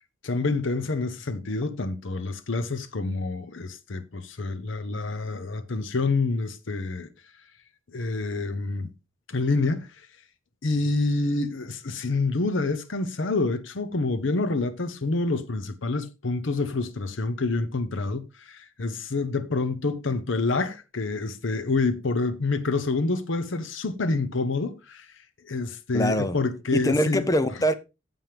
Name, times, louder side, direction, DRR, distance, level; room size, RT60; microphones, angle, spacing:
voice 1, 0.2-7.1 7.9-8.9 9.3-9.9 10.6-25.1 25.5-27.2, left 3 dB, 75° left, 0.8 m, -27 dB
voice 2, 25.9-26.4 26.7-27.7, equal, 15° left, 0.6 m, -23 dB
9.0 x 7.3 x 3.4 m
head